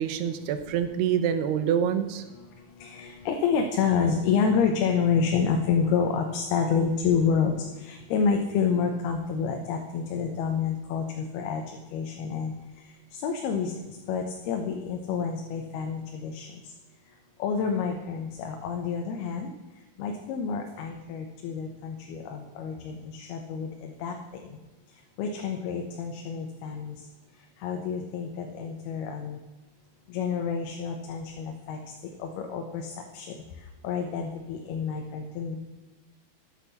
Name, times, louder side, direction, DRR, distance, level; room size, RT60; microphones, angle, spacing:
voice 1, 0.0-2.2, right 8 dB, 85° right, 9 dB, 3.0 m, -26 dB
voice 2, 2.8-7.5 7.8-11.6 11.9-12.5 13.2-13.7 14.1-16.5 17.4-19.5 20.0-24.1 25.2-27.0 27.6-29.4 30.1-31.8 32.2-32.9 33.1-33.3 33.8-35.6, left 6 dB, 80° left, 3 dB, 2.9 m, -28 dB
12.0 x 8.3 x 7.0 m, 1.1 s
omnidirectional pair, 4.6 m